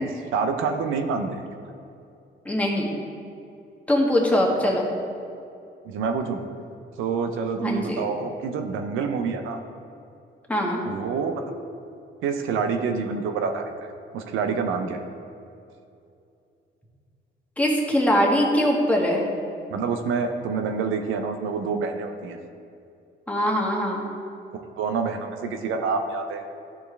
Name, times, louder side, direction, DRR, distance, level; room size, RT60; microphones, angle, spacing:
voice 1, 0.3-1.5 5.8-6.4 7.0-9.6 10.9-11.5 12.2-15.0 19.7-22.4 24.5-26.4, right 5 dB, 85° right, 6 dB, 0.7 m, -27 dB
voice 2, 2.4-2.9 3.9-4.8 7.6-8.1 10.5-10.8 17.6-19.2 23.3-24.0, equal, 5° left, -2 dB, 1.6 m, -22 dB
12.5 x 4.5 x 3.3 m, 2.6 s
cardioid pair, 90°, 20 cm